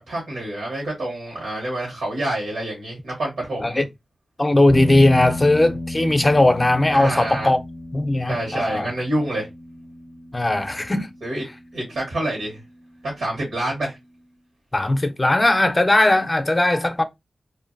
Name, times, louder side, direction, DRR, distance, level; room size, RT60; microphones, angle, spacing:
voice 1, 0.1-3.8 6.9-7.5 8.3-9.5 11.2-11.4 11.7-12.6 13.0-14.0, right 1 dB, 90° right, 1.3 m, -27 dB
voice 2, 4.4-7.6 7.9-8.9 10.3-11.1 14.7-17.0, left 1 dB, 25° left, 0.5 m, -18 dB
sound 1, 4.7-13.0, left 1 dB, 35° right, 0.5 m, -34 dB
2.5 x 2.5 x 2.4 m
cardioid pair, 50°, 0 cm